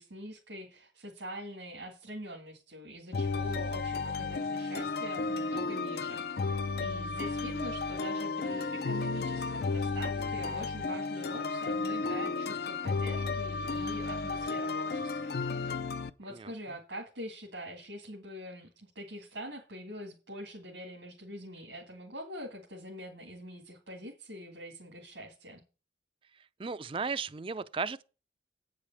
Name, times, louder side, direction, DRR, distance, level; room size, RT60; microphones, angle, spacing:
voice 1, 0.0-6.5 6.8-15.8 16.2-25.6, equal, 85° right, 2.0 m, -44 dB
sound 1, 3.1-16.1, left 4 dB, 60° left, 0.5 m, -33 dB
voice 2, 10.2-10.6 16.3-16.5 26.6-28.0, right 4 dB, 30° right, 0.4 m, -36 dB
9.0 x 4.9 x 7.1 m
head